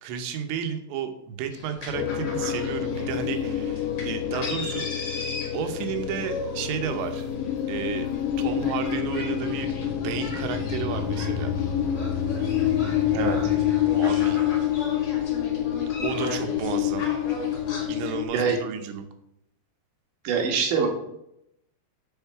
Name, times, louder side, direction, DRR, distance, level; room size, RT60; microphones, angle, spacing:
voice 1, 0.0-4.9 5.5-7.3 7.7-8.1 8.4-11.5 14.0-14.4 16.0-17.1 17.9-19.1, right 8 dB, 85° right, 7 dB, 3.1 m, -32 dB
sound 1, 1.5-17.9, left 2 dB, 60° left, 1.2 m, -38 dB
sound 2, 1.9-18.2, left 11 dB, 85° left, 2.5 m, -27 dB
sound 3, 8.4-14.8, left 4 dB, 40° right, 1.0 m, -35 dB
voice 2, 20.2-20.9, right 6 dB, 60° right, 2 dB, 2.4 m, -24 dB
7.1 x 6.4 x 4.6 m, 0.81 s
omnidirectional pair, 4.9 m